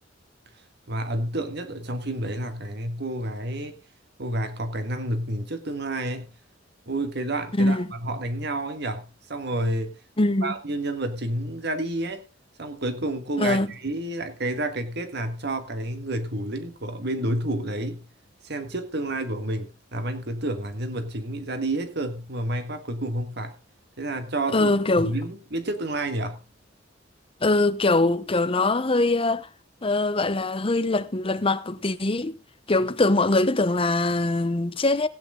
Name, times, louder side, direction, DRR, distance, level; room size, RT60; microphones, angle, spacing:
voice 1, 0.9-3.8 4.2-6.3 6.9-9.9 10.4-12.2 12.6-18.1 18.4-23.5 24.0-24.7 25.0-26.4, right 1 dB, 60° right, 1.7 m, -30 dB
voice 2, 7.5-7.9 10.2-10.6 13.4-13.7 24.5-25.1 27.4-29.5 29.8-32.4 32.7-35.1, left 2 dB, 30° left, 0.8 m, -22 dB
16.5 x 9.1 x 3.8 m
head